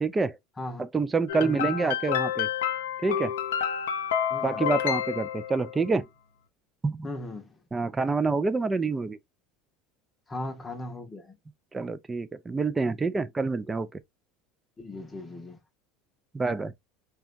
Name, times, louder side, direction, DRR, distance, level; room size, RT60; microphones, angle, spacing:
voice 1, 0.0-0.4 0.8-2.5 3.0-3.3 4.4-6.1 6.8-7.1 7.7-9.2 11.7-14.0 16.3-16.7, right 4 dB, 20° right, 0.4 m, -27 dB
sound 1, 1.3-5.9, left 9 dB, 85° left, 0.5 m, -29 dB
voice 2, 4.3-4.6 7.0-7.6 10.3-11.4 14.8-15.6, left 1 dB, 20° left, 0.8 m, -38 dB
2.8 x 2.3 x 2.4 m
hypercardioid pair, 95°, 0 cm